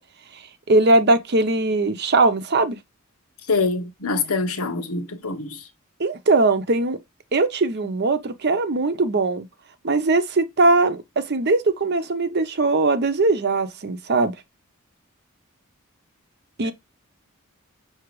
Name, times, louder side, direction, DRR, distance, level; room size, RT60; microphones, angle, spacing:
voice 1, 0.7-2.8 6.0-7.0 7.3-9.5 9.8-14.3 16.6-16.7, right 2 dB, 50° right, 0.7 m, -20 dB
voice 2, 3.5-5.6, left 3 dB, 85° left, 0.9 m, -25 dB
5.9 x 2.8 x 3.1 m
head